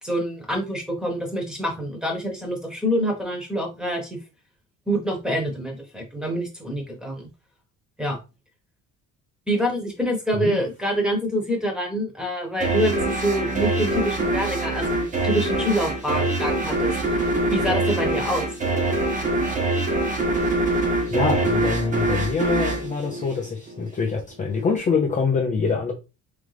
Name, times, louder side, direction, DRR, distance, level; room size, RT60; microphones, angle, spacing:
voice 1, 0.0-4.2 4.9-7.3 8.0-8.2 9.5-18.5, equal, ahead, 1.2 m, -26 dB
sound 1, 12.6-23.9, right 2 dB, 25° right, 1.1 m, -24 dB
voice 2, 21.1-25.9, left 5 dB, 25° left, 0.6 m, -24 dB
3.8 x 3.4 x 3.4 m
cardioid pair, 150°, 31 cm